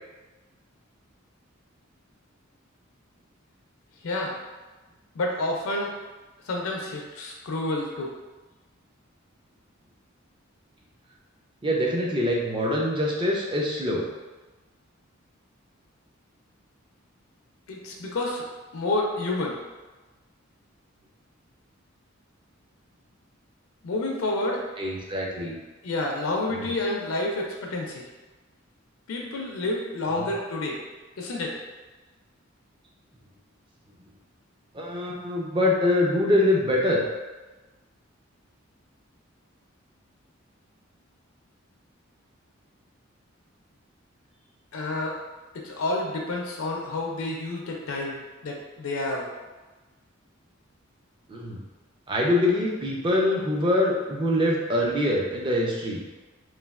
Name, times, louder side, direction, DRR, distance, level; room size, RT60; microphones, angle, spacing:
voice 1, 4.0-4.4 5.2-5.9 6.5-8.1 17.7-18.4 18.7-19.6 23.8-24.6 25.8-28.0 29.1-30.8 31.2-31.6 44.7-45.2 45.6-49.3, left 2 dB, 80° left, 0 dB, 0.4 m, -29 dB
voice 2, 11.6-14.1 24.8-25.6 26.6-26.7 30.1-30.3 34.7-37.0 51.3-51.6 52.1-56.0, left 1 dB, 25° right, -2 dB, 0.4 m, -24 dB
3.1 x 2.3 x 2.3 m, 1.2 s
head